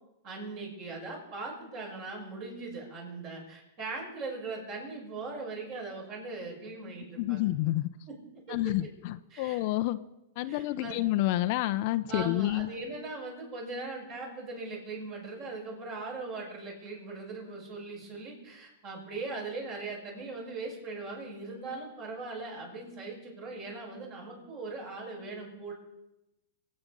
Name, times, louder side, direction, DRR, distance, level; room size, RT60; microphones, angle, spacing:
voice 1, 0.2-7.5 8.1-8.2 8.5-8.7 9.3-9.6 10.5-11.0 12.1-25.7, right 3 dB, 40° right, -1 dB, 6.3 m, -40 dB
voice 2, 7.2-7.9 8.5-10.0 10.4-12.7, left 16 dB, 50° left, 12 dB, 0.6 m, -29 dB
25.0 x 8.9 x 5.4 m, 0.96 s
supercardioid pair, 145°, 0 cm